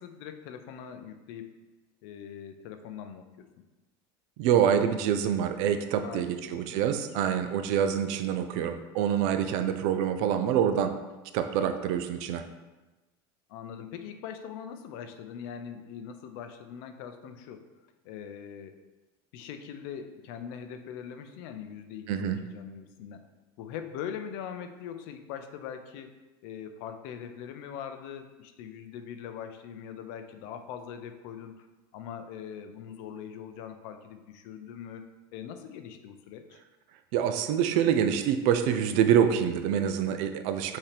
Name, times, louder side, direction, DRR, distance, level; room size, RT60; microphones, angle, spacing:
voice 1, 0.0-1.5 2.0-3.4 6.0-7.1 13.5-17.7 18.0-18.8 19.3-23.3 23.6-26.1 26.4-31.7 31.9-35.1 35.3-36.6, left 8 dB, 65° left, 8 dB, 0.5 m, -42 dB
voice 2, 4.4-10.9 11.3-12.4 22.1-22.4 37.1-40.8, right 9 dB, 65° right, 9 dB, 0.4 m, -26 dB
5.7 x 2.8 x 3.3 m, 1.2 s
supercardioid pair, 140°, 12 cm